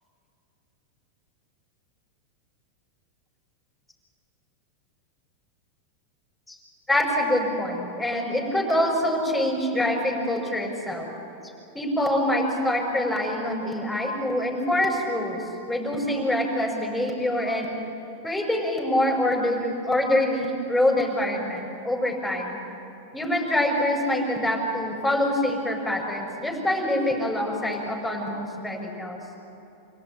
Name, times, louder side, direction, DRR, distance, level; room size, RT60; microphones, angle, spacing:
voice 1, 6.9-11.1 11.7-17.7 18.2-22.6 23.1-29.2, left 1 dB, ahead, -2 dB, 5.8 m, -25 dB
26.0 x 17.5 x 9.1 m, 2.8 s
supercardioid pair, 130°, 0 cm